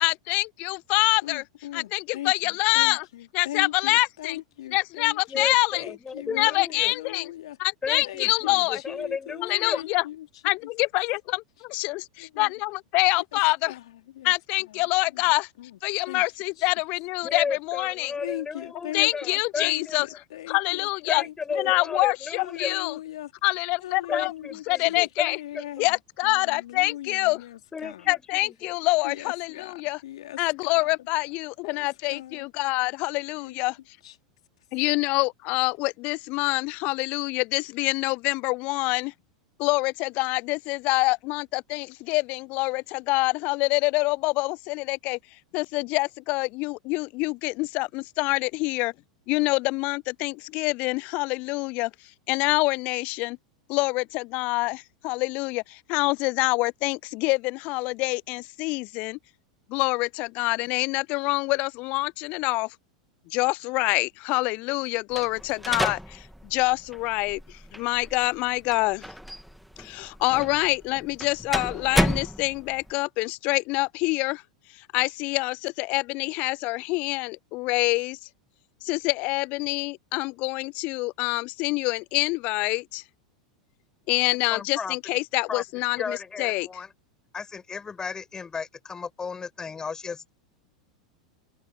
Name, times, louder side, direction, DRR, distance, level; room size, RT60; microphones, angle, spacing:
voice 1, 0.0-1.4 1.7-3.1 3.3-4.4 4.7-5.9 6.3-7.3 7.6-8.8 9.4-10.0 10.4-13.7 14.2-15.5 15.8-18.1 18.9-20.1 20.5-21.2 21.6-23.0 23.4-24.3 24.7-25.4 25.8-27.4 28.1-30.0 30.4-33.8 34.7-39.1 39.6-45.2 45.5-48.9 49.3-51.9 52.3-53.4 53.7-59.2 59.7-62.7 63.3-69.1 69.8-74.4 74.8-78.2 78.8-83.0 84.1-86.7, left 24 dB, 45° left, 0.4 m, -26 dB
voice 2, 1.2-5.5 5.7-7.6 8.0-10.3 12.2-12.5 13.3-13.4 13.7-13.8 14.1-14.3 15.1-15.2 15.6-15.7 16.1-16.2 16.6-16.7 18.2-21.6 22.3-23.3 23.8-26.0 26.2-28.1 29.0-30.9 31.6-32.5 33.4-33.6 34.0-34.1, left 13 dB, 60° left, 3.4 m, -39 dB
voice 3, 5.3-6.9 7.8-9.8 17.2-20.0 21.1-22.8 24.1-25.7 27.7-28.7 84.5-85.0 85.5-85.6 85.9-86.9 87.3-90.3, left 5 dB, 20° left, 6.4 m, -34 dB
sound 1, 65.1-72.9, equal, ahead, 3.0 m, -32 dB
figure-of-eight pair, 85°, 3 cm